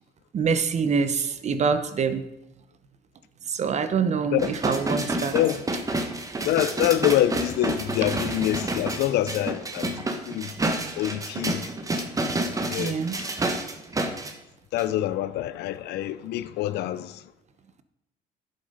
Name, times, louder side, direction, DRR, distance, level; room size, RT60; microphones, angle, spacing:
voice 1, 0.3-2.2 3.5-5.3 12.8-13.2, right 5 dB, 40° right, 1.0 m, -25 dB
sound 1, 4.4-14.3 14.8-14.9, right 2 dB, 20° right, 1.4 m, -29 dB
voice 2, 6.4-10.5 11.0-11.7 12.7-13.0 14.7-17.2, left 13 dB, 80° left, 0.5 m, -26 dB
11.0 x 8.1 x 5.4 m
cardioid pair, 110°, 17 cm